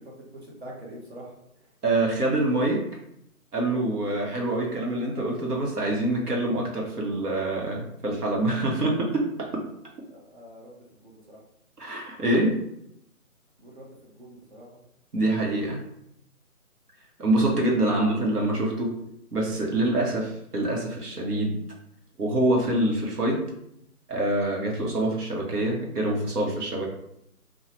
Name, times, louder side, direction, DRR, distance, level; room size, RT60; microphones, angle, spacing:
voice 1, 0.0-1.3 10.1-11.4 13.6-14.8 17.9-18.2, right 1 dB, 45° right, -3 dB, 1.0 m, -45 dB
voice 2, 1.8-2.8 3.5-9.6 11.8-12.5 15.1-15.8 17.2-18.9 19.3-21.6 22.2-23.4 24.1-26.9, right 1 dB, 85° right, -2 dB, 1.1 m, -25 dB
2.7 x 2.3 x 2.9 m, 0.76 s
figure-of-eight pair, 165°, 45 cm